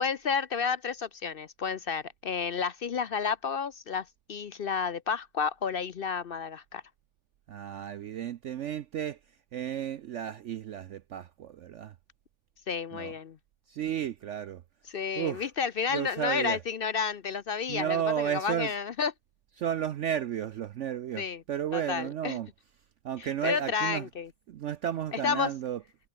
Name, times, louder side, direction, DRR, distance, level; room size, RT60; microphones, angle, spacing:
voice 1, 0.0-6.8 12.7-13.4 14.9-19.1 21.2-21.4 21.7-22.4 23.2-24.3 25.1-25.5, left 6 dB, 55° left, 0.6 m, -31 dB
voice 2, 7.5-9.2 9.5-11.9 12.9-13.1 13.7-14.6 15.2-15.5 15.9-16.6 17.7-18.7 19.6-22.5 23.0-24.1 24.5-25.8, right 10 dB, 60° right, 0.8 m, -33 dB
omnidirectional pair, 1.6 m